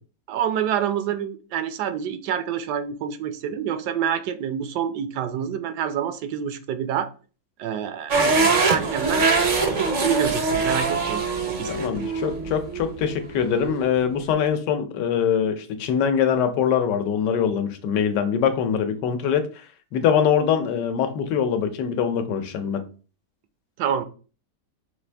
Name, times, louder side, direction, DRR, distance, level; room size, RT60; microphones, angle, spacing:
voice 1, 0.3-7.1 7.6-8.2 8.7-9.3 9.8-11.7 23.8-24.0, right 9 dB, 75° right, 1.1 m, -27 dB
sound 1, 8.1-14.2, right 4 dB, 55° right, 0.5 m, -24 dB
voice 2, 8.2-8.6 11.7-19.7 19.9-22.8, left 8 dB, 85° left, 1.3 m, -23 dB
5.8 x 2.5 x 3.3 m
omnidirectional pair, 1.8 m